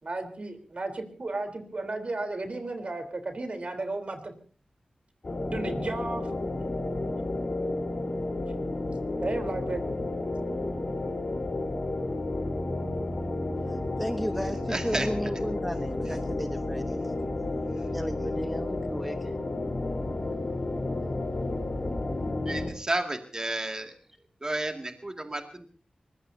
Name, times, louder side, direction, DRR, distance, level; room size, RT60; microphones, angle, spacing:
voice 1, 0.0-4.3 5.5-6.3 9.2-9.8, right 2 dB, 50° right, 3.8 m, -34 dB
sound 1, 5.2-22.7, left 2 dB, 55° left, 4.1 m, -31 dB
voice 2, 13.7-17.1 17.9-19.3, equal, ahead, 1.1 m, -34 dB
voice 3, 14.7-15.1 22.5-23.9 24.4-25.7, right 2 dB, 30° right, 2.3 m, -31 dB
24.0 x 21.5 x 2.8 m
wide cardioid pair, 70°, 3 cm